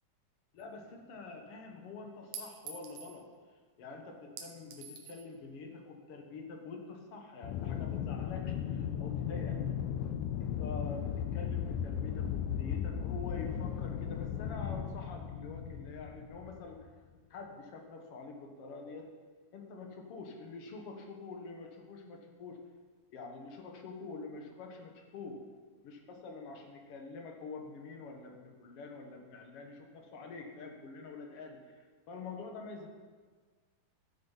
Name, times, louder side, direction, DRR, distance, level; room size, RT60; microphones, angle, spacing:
voice 1, 0.5-3.3 3.8-10.0 10.4-16.9 17.3-19.1 19.5-22.6 23.1-25.4 25.8-32.9, left 4 dB, 55° left, 2 dB, 1.8 m, -46 dB
Chink clink, 0.6-0.7 2.3-3.2 4.4-5.3, right 5 dB, 70° right, 2.3 m, -46 dB
Aircraft, 7.4-16.9, left 9 dB, 80° left, 1.9 m, -36 dB
13.0 x 7.6 x 5.6 m, 1.5 s
omnidirectional pair, 4.0 m